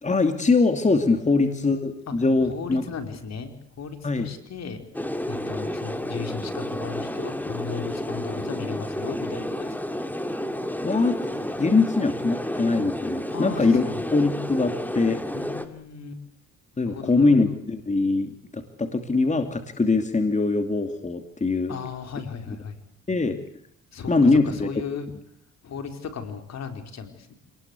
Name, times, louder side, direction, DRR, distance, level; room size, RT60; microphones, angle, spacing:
voice 1, 0.0-2.8 4.0-4.3 10.8-11.2 11.4-13.8 14.1-15.2 16.8-21.7 23.1-23.4 24.1-24.7, left 3 dB, 25° left, 7 dB, 2.6 m, -22 dB
voice 2, 1.2-1.6 2.1-2.2 2.4-4.8 5.3-9.7 13.3-14.1 15.3-16.2 16.8-17.3 21.7-22.8 23.9-25.1 25.6-27.3, left 6 dB, 60° left, 6 dB, 4.7 m, -36 dB
sound 1, 4.9-15.7, left 1 dB, 5° left, 2.7 m, -31 dB
27.5 x 20.0 x 8.3 m, 0.69 s
cardioid pair, 90°, 30 cm